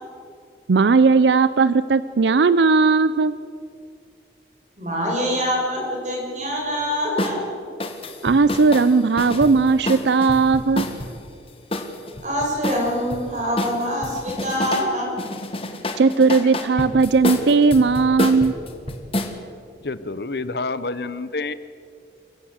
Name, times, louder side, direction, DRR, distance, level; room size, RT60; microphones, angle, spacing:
voice 1, 0.7-3.3 8.2-10.9 16.0-18.5, right 4 dB, 80° right, 15 dB, 0.5 m, -17 dB
voice 2, 4.8-7.5 12.2-15.1, equal, 45° right, -1 dB, 6.5 m, -25 dB
sound 1, 7.2-7.4 7.8-11.1 11.7-13.2 13.6-14.9 15.2-19.3, left 1 dB, 35° left, 1.6 m, -28 dB
voice 3, 19.8-21.5, left 3 dB, 70° left, 14 dB, 0.9 m, -28 dB
25.0 x 15.5 x 8.0 m, 2.3 s
head